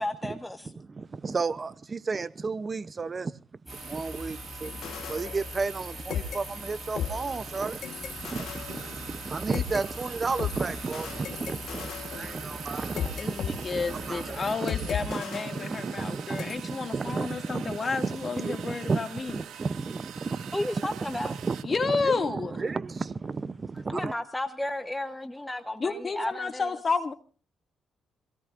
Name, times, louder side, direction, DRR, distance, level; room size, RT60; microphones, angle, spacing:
voice 1, 0.0-0.7 9.8-9.9 20.5-21.3 23.9-26.8, left 1 dB, 10° left, 1.0 m, -33 dB
voice 2, 0.8-3.4 3.8-7.8 8.2-21.6 21.9-24.1, right 4 dB, 35° right, 0.6 m, -33 dB
sound 1, 3.7-14.6, equal, 10° right, 3.4 m, -42 dB
sound 2, 3.7-21.6, right 9 dB, 75° right, 2.0 m, -45 dB
sound 3, 4.6-5.8 6.1-9.8 10.4-13.5 13.8-14.1 14.7-16.1 16.4-16.6, left 8 dB, 70° left, 1.3 m, -37 dB
voice 3, 13.1-19.4 21.6-22.6 25.8-27.1, left 4 dB, 35° left, 2.1 m, -31 dB
26.5 x 17.5 x 2.5 m
cardioid pair, 90°, 0 cm